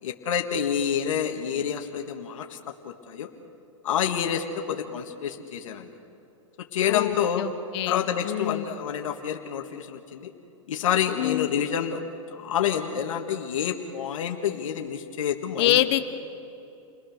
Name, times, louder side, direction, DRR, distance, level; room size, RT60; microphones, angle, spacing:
voice 1, 0.0-3.3 3.8-5.9 6.7-7.5 7.9-10.3 10.7-12.0 12.3-15.8, left 8 dB, 75° left, 3 dB, 1.8 m, -28 dB
voice 2, 6.9-8.6 11.2-11.5 15.6-16.0, left 15 dB, 55° left, 9 dB, 1.1 m, -25 dB
29.5 x 19.0 x 6.6 m, 2.8 s
hypercardioid pair, 135°, 17 cm